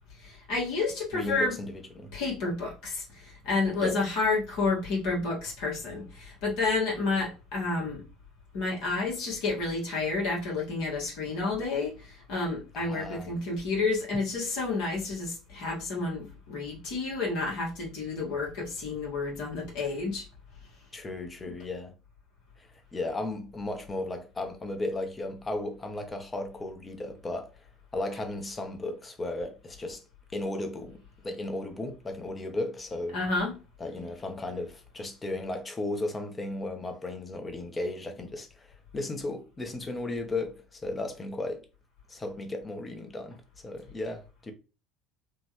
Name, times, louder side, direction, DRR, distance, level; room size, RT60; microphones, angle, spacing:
voice 1, 0.2-1.6 2.1-8.0 8.5-20.2 21.5-21.6 33.1-33.5, left 3 dB, 65° left, 1.8 m, -30 dB
voice 2, 1.1-2.2 3.8-4.0 12.8-13.3 20.9-21.9 22.6-27.6 27.9-30.0 30.3-33.2 33.8-38.7 38.9-41.7 42.1-44.5, left 2 dB, 25° left, 0.9 m, -35 dB
3.7 x 2.5 x 3.0 m
hypercardioid pair, 65°, 0 cm